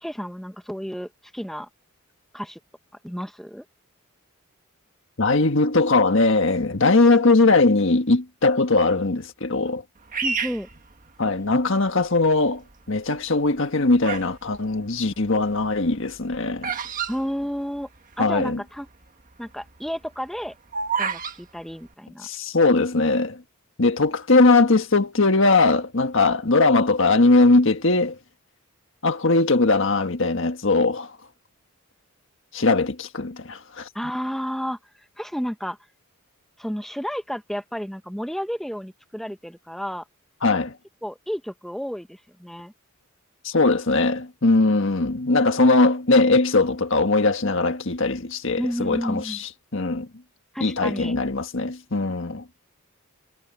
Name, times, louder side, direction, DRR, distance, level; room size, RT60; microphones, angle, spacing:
voice 1, 0.0-1.7 2.3-2.6 3.0-3.6 10.2-10.7 17.1-17.9 18.2-18.9 19.4-20.5 21.0-22.3 33.9-35.8 36.6-40.0 41.0-42.7 48.6-49.4 50.5-51.1, equal, ahead, 0.8 m, -31 dB
voice 2, 5.2-9.8 11.2-16.8 18.2-18.6 22.2-23.4 23.8-28.2 29.0-31.1 32.5-33.9 40.4-40.7 43.4-50.1 50.6-52.4, left 3 dB, 60° left, 1.6 m, -20 dB
Bird vocalization bird call bird song, 10.1-11.6 12.3-12.7 13.4-14.4 14.7-18.1 18.4-18.5 18.7-19.0 19.5-21.4, right 6 dB, 40° right, 1.6 m, -30 dB
head